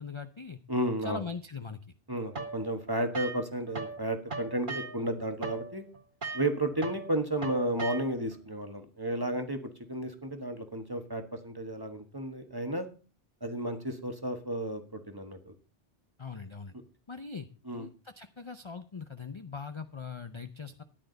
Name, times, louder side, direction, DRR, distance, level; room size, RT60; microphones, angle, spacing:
voice 1, 0.0-0.6 1.0-1.8 16.2-16.7 17.1-17.5 17.7-20.8, left 5 dB, 30° left, 9 dB, 0.6 m, -41 dB
voice 2, 0.7-1.2 2.1-5.8 6.3-9.6 9.9-12.9 13.4-15.5 17.6-17.9, right 1 dB, 20° right, 6 dB, 1.5 m, -33 dB
sound 1, 2.4-4.0 4.3-8.4, right 4 dB, 45° right, 1.8 m, -39 dB
13.5 x 10.5 x 4.0 m, 0.36 s
omnidirectional pair, 1.2 m